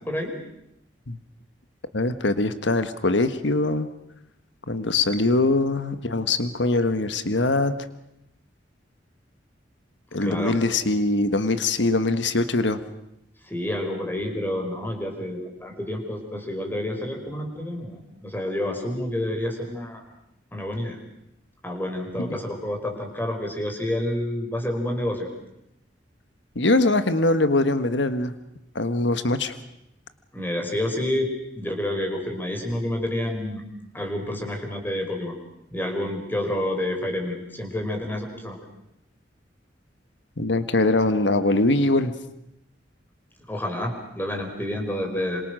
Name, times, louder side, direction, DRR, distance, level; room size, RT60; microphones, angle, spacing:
voice 1, 1.9-3.9 4.7-7.7 10.1-12.8 22.2-22.4 26.5-28.3 28.7-29.5 40.4-42.1, left 2 dB, 80° left, 10 dB, 1.5 m, -22 dB
voice 2, 10.2-10.5 13.4-20.0 20.5-21.0 21.6-25.3 30.3-31.3 31.5-33.6 33.9-35.3 35.7-38.6 43.5-45.4, left 1 dB, 10° left, 2 dB, 4.8 m, -29 dB
27.0 x 26.5 x 6.4 m, 0.80 s
head